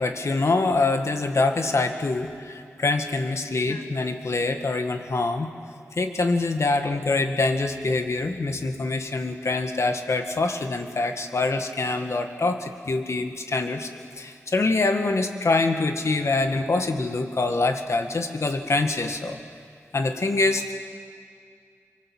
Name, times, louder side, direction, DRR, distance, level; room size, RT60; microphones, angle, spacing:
voice 1, 0.0-5.5 5.9-13.9 14.2-19.4 19.9-20.7, left 3 dB, 65° left, 6 dB, 1.9 m, -25 dB
24.5 x 24.5 x 7.5 m, 2.3 s
wide cardioid pair, 85°, 5 cm